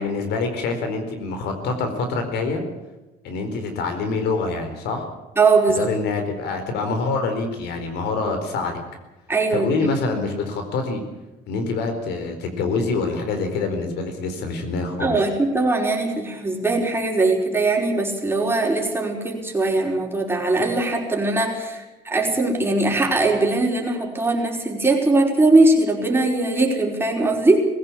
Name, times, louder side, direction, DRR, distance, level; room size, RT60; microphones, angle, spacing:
voice 1, 0.0-2.6 3.2-5.1 5.8-8.8 9.5-11.0 11.5-15.2, left 3 dB, 80° left, 6 dB, 4.4 m, -25 dB
voice 2, 5.4-5.9 9.3-9.9 15.0-27.7, right 2 dB, 15° right, 0 dB, 5.0 m, -20 dB
21.5 x 16.0 x 8.7 m, 1.0 s
cardioid pair, 110°, 17 cm